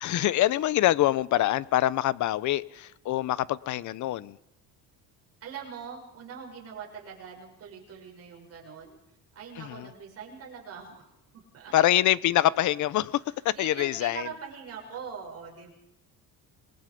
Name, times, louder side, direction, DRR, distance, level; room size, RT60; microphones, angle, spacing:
voice 1, 0.0-4.4 9.6-9.9 11.7-14.3, left 14 dB, 55° left, 0.8 m, -25 dB
voice 2, 5.4-9.0 9.3-11.7 13.5-15.7, right 6 dB, 45° right, 6.3 m, -42 dB
27.0 x 21.5 x 5.3 m
cardioid pair, 175°, 35 cm